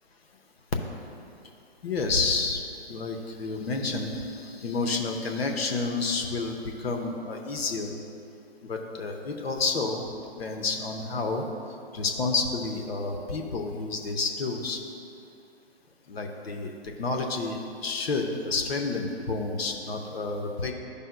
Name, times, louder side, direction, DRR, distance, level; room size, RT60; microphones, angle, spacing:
voice 1, 1.8-2.6 2.9-7.9 8.6-10.0 10.4-11.4 11.9-14.8 16.1-20.7, left 3 dB, 70° left, 3 dB, 0.9 m, -30 dB
12.5 x 5.4 x 2.2 m, 2.7 s
hypercardioid pair, 140°, 32 cm